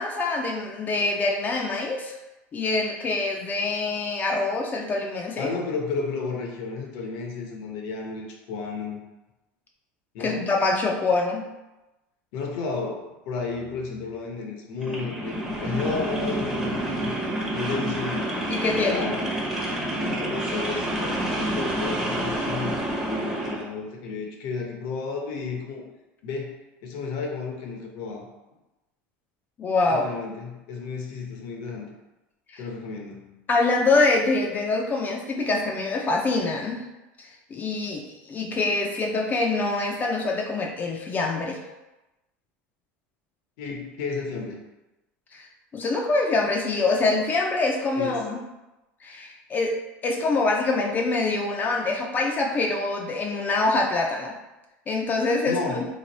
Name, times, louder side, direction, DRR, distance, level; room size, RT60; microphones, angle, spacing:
voice 1, 0.0-2.2 2.5-5.5 10.2-11.5 18.5-19.1 29.6-30.0 32.5-32.6 33.5-36.8 37.2-41.6 45.3-45.5 45.7-48.4 49.0-49.8 50.0-54.4 54.9-55.9, left 3 dB, 30° left, 1 dB, 0.5 m, -25 dB
voice 2, 5.4-9.0 10.1-10.4 12.3-17.2 17.5-18.3 18.7-19.2 20.0-25.8 26.2-26.5 26.8-28.3 29.9-31.9 32.6-33.3 43.6-44.6 48.0-48.2 55.5-55.8, left 4 dB, 70° left, 1 dB, 0.8 m, -32 dB
sound 1, 14.8-23.6, right 1 dB, 10° right, 0.8 m, -28 dB
3.2 x 2.5 x 4.0 m, 1.0 s
supercardioid pair, 110°, 6 cm